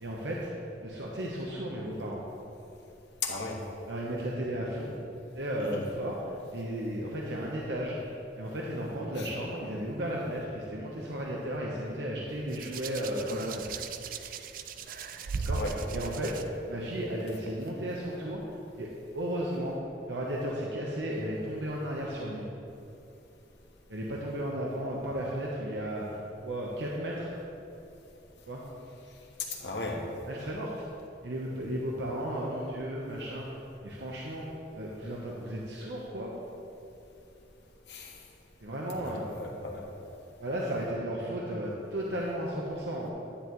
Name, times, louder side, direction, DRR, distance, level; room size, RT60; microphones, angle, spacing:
voice 1, 0.0-0.5 0.8-2.2 3.9-4.9 5.3-13.7 15.4-16.3 16.7-18.4 18.8-19.8 20.1-22.5 23.9-27.3 28.5-28.6 30.3-30.7 31.2-34.5 34.7-36.3 38.6-39.2 40.4-43.1, equal, 85° right, -3 dB, 1.0 m, -34 dB
voice 2, 3.2-3.6 5.6-5.8 9.2-9.3 15.5-15.7 29.5-30.0 37.9-38.1 39.0-39.8, left 3 dB, 80° left, -1 dB, 1.4 m, -36 dB
Hands, 12.5-16.4 17.5-17.7, right 4 dB, 50° right, 0.3 m, -37 dB
10.0 x 10.0 x 3.1 m, 2.9 s
head